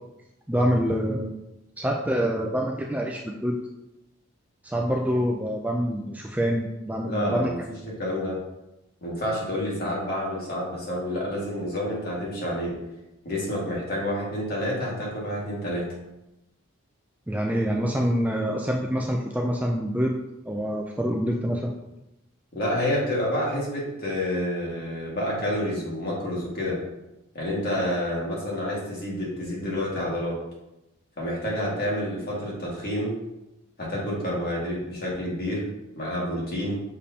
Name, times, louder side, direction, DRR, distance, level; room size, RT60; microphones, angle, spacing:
voice 1, 0.5-1.3 1.8-3.6 4.6-7.5 17.3-20.2 20.5-21.7, equal, 5° right, 0 dB, 0.3 m, -26 dB
voice 2, 7.0-7.6 7.8-8.4 9.0-12.7 13.2-15.9 22.5-26.8 27.3-30.4 31.2-33.1 33.8-35.7 36.0-36.8, left 1 dB, 45° left, -5 dB, 2.0 m, -28 dB
6.7 x 5.1 x 2.8 m, 0.94 s
head